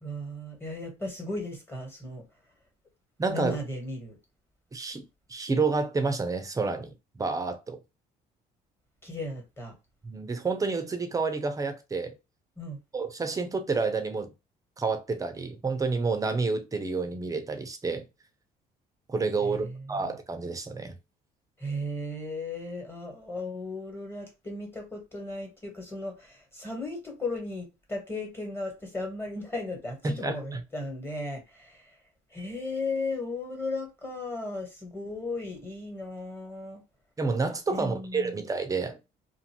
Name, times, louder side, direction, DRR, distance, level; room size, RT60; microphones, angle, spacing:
voice 1, 0.0-2.2 3.3-4.1 9.0-9.7 12.6-12.8 19.4-20.1 21.6-32.0 32.3-36.8 37.7-38.4, left 2 dB, 15° left, 1.4 m, -36 dB
voice 2, 3.2-3.6 4.7-7.8 10.0-12.1 12.9-14.3 14.8-18.1 19.1-21.0 30.0-30.6 37.2-39.0, right 4 dB, 20° right, 0.6 m, -29 dB
2.6 x 2.5 x 2.9 m
cardioid pair, 110°, 17 cm